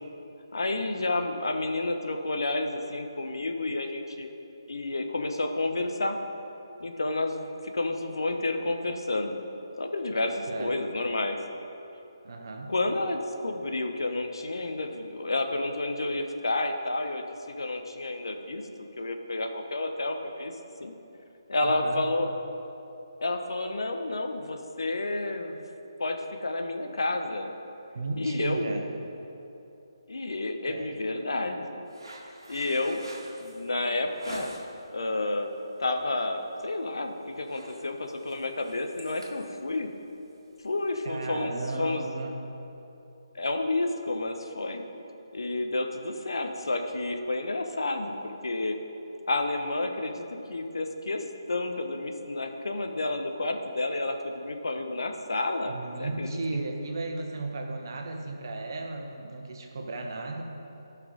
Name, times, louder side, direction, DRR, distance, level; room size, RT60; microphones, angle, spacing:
voice 1, 0.5-4.3 4.7-6.2 6.8-9.4 9.8-11.4 12.7-20.5 20.8-20.9 21.5-22.3 23.2-25.6 26.0-27.5 28.2-28.8 30.1-31.8 32.5-33.0 33.4-34.5 34.9-39.9 40.6-42.1 43.4-44.8 45.3-48.8 49.3-55.7 56.0-56.3, left 2 dB, 65° left, 5 dB, 0.9 m, -30 dB
voice 2, 10.5-10.8 12.2-12.7 21.6-22.1 27.9-28.9 30.7-30.9 41.0-42.5 55.6-60.4, right 2 dB, 50° right, 3 dB, 1.2 m, -34 dB
sound 1, 31.9-34.9 35.3-35.7 36.0-36.2 36.6-37.0 37.2-41.1, right 1 dB, 65° right, 1.6 m, -46 dB
14.0 x 5.9 x 4.0 m, 2.9 s
figure-of-eight pair, 145°, 3 cm